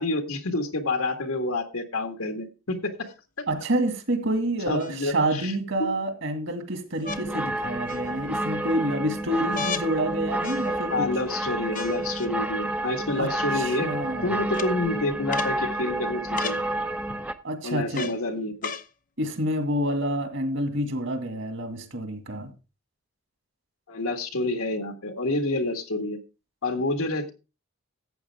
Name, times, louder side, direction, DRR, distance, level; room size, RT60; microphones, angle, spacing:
voice 1, 0.0-2.9 4.7-5.5 5.8-5.9 10.9-16.6 17.6-18.7 23.9-26.2 26.6-27.3, left 2 dB, 75° left, 1.8 m, -28 dB
sound 1, 3.1-3.2 4.8-5.5 7.0-7.2 7.9-8.4 9.5-9.9 10.4-11.0 11.7-12.3 13.2-13.3 14.5-14.7 15.3-15.6 16.4-16.6 17.9-18.2 18.6-18.9 19.7-19.8, left 5 dB, 35° left, 0.7 m, -35 dB
voice 2, 3.5-11.1 13.2-13.3 13.5-14.4 17.4-18.1 19.2-22.5, right 1 dB, 60° right, 2.3 m, -28 dB
sound 2, 7.1-17.3, right 1 dB, 5° right, 0.6 m, -30 dB
14.0 x 8.5 x 3.5 m
head